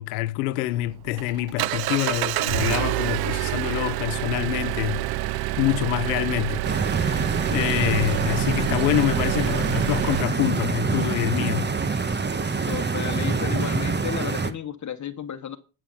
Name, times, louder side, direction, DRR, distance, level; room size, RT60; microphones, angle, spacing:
voice 1, 0.0-5.0 5.6-11.7, left 16 dB, 85° left, 0.8 m, -26 dB
Engine, 0.7-10.2, right 17 dB, 55° right, 0.6 m, -27 dB
Stream, 6.6-14.5, right 4 dB, 25° right, 1.3 m, -26 dB
voice 2, 12.7-15.6, left 9 dB, 40° left, 1.4 m, -33 dB
10.0 x 7.8 x 5.7 m
supercardioid pair, 80°, 46 cm